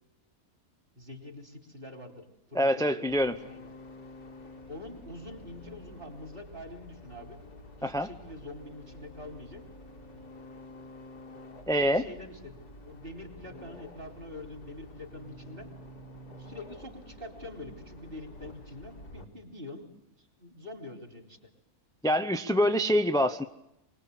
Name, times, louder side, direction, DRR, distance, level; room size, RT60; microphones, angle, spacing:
voice 1, 1.0-3.1 3.4-3.7 4.7-7.4 7.8-9.6 11.7-15.7 16.4-19.9 20.2-21.4, left 1 dB, 35° right, 4 dB, 4.1 m, -45 dB
voice 2, 2.5-3.4 7.8-8.1 11.7-12.0 22.0-23.4, equal, 5° left, 8 dB, 0.5 m, -25 dB
sound 1, 3.1-19.2, left 1 dB, 85° left, 2.8 m, -49 dB
25.0 x 21.0 x 8.3 m, 0.85 s
omnidirectional pair, 1.6 m